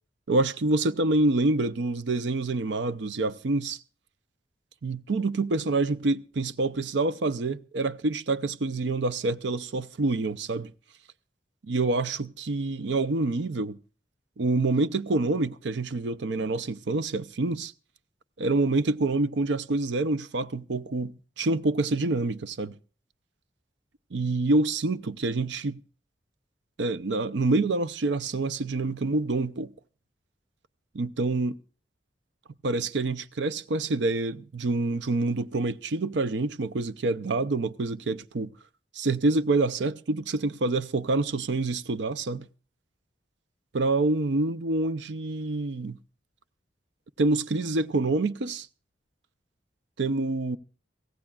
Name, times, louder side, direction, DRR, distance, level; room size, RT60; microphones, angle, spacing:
voice 1, 0.3-3.8 4.8-10.7 11.6-13.8 14.4-17.7 18.4-22.8 24.1-25.8 26.8-29.7 30.9-31.6 32.6-38.5 38.9-42.5 43.7-46.0 47.2-48.7 50.0-50.6, right 2 dB, 80° right, 0.6 m, -27 dB
23.5 x 16.0 x 2.4 m
head